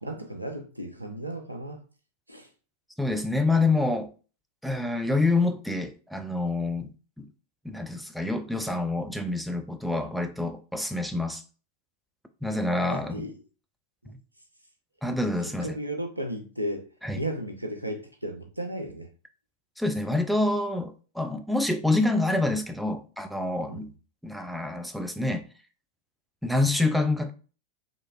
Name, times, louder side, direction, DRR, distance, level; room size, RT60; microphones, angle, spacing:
voice 1, 0.0-1.8 2.3-2.5 12.9-13.3 14.0-14.1 15.6-16.8 17.2-19.1 23.7-23.8, right 1 dB, 85° right, 0.6 m, -34 dB
voice 2, 3.0-4.1 4.6-7.3 7.6-11.4 12.4-13.3 15.0-15.8 17.0-17.2 19.8-23.9 24.2-25.5 26.4-27.3, left 2 dB, ahead, 0.4 m, -27 dB
4.0 x 3.1 x 2.3 m
figure-of-eight pair, 90°, 0 cm